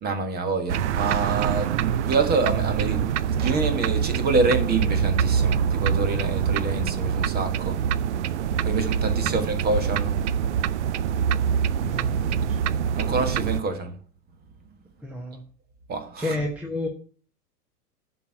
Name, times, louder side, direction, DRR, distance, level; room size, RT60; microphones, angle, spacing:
voice 1, 0.0-3.1 3.4-7.8 8.6-10.1 13.0-13.9 15.9-16.2, right 3 dB, 20° right, 1.5 m, -26 dB
sound 1, 0.7-13.6, right 8 dB, 50° right, 0.5 m, -25 dB
voice 2, 11.8-12.6 15.0-15.4 16.2-16.9, left 2 dB, 5° right, 1.0 m, -31 dB
10.5 x 4.7 x 7.5 m
figure-of-eight pair, 105°, 48 cm